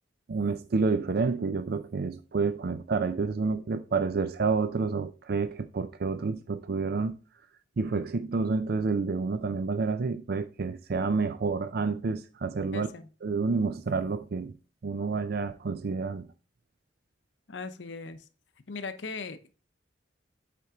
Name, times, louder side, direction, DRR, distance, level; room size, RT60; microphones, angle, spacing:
voice 1, 0.3-7.2 7.8-12.9 13.2-14.5 14.8-16.3, right 4 dB, 55° right, 0.5 m, -29 dB
voice 2, 12.7-13.1 17.5-18.3 18.7-19.6, left 4 dB, 75° left, 0.8 m, -39 dB
8.4 x 4.5 x 3.7 m
head